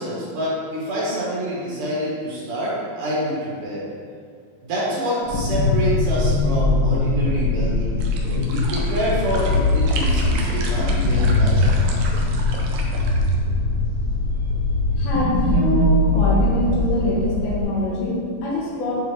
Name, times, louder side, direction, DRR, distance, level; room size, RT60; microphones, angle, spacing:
voice 1, 0.0-3.9 4.6-11.8, equal, 65° right, -7 dB, 2.7 m, -27 dB
sound 1, 5.3-17.6, left 2 dB, 70° left, 2.3 m, -21 dB
sound 2, 8.0-13.3, right 3 dB, 90° right, 1.7 m, -35 dB
voice 2, 15.0-18.9, left 1 dB, 90° left, -5 dB, 3.1 m, -24 dB
8.9 x 3.6 x 3.2 m, 2.1 s
omnidirectional pair, 4.3 m